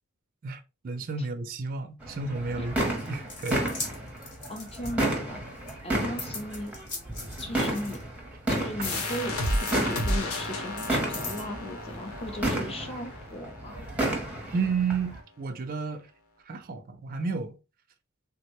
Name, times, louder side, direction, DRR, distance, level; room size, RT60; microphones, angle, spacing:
voice 1, 0.4-2.7 3.1-3.7 14.5-16.1 16.5-17.6, right 4 dB, 40° right, 0.4 m, -31 dB
sound 1, 2.0-15.2, right 1 dB, 5° right, 0.7 m, -32 dB
sound 2, 2.9-5.3 5.7-8.3 8.8-11.4, left 3 dB, 55° left, 1.1 m, -40 dB
voice 2, 4.5-5.4 5.8-6.7 7.4-8.0 8.5-13.8, left 1 dB, 25° left, 0.6 m, -37 dB
sound 3, 8.8-14.2, left 1 dB, 80° left, 0.7 m, -33 dB
3.4 x 2.1 x 2.9 m
head